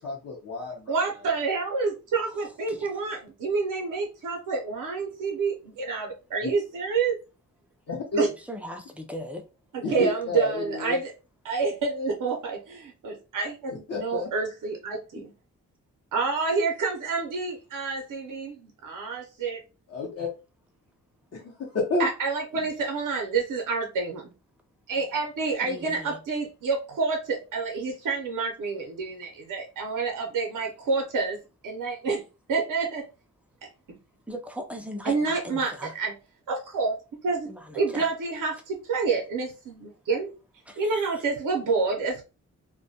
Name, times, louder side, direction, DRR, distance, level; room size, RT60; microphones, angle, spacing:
voice 1, 0.0-1.0 6.4-6.5 7.9-8.2 9.8-11.0 13.9-14.3 19.9-20.3 21.3-22.1, left 3 dB, 50° left, 0.7 m, -30 dB
voice 2, 0.9-7.2 8.2-8.3 9.7-11.1 11.4-15.3 16.1-19.6 22.0-24.2 24.9-31.4 31.6-32.2 32.5-33.0 35.1-36.1 36.5-36.9 37.2-37.5 37.8-40.3 40.8-42.2, right 4 dB, 75° right, 0.6 m, -28 dB
voice 3, 8.5-9.4 9.8-10.0 25.6-26.2 34.3-35.9 37.5-38.1 40.7-41.1, equal, 5° right, 0.4 m, -39 dB
2.2 x 2.1 x 2.7 m
wide cardioid pair, 120°, 31 cm